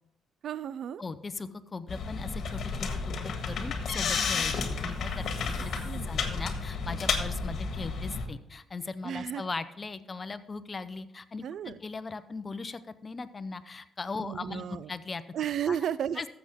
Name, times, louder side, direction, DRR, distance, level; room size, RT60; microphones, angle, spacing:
voice 1, 0.4-1.0 5.8-6.1 9.0-9.5 11.4-11.8 14.2-14.9 15.3-16.2, right 9 dB, 65° right, 18 dB, 0.3 m, -33 dB
voice 2, 1.0-15.2 15.7-15.8 16.2-16.3, left 4 dB, 30° left, 13 dB, 0.7 m, -39 dB
sound 1, 1.9-8.3, left 5 dB, 65° left, 1.6 m, -32 dB
14.0 x 7.0 x 3.6 m, 0.82 s
cardioid pair, 90°, 0 cm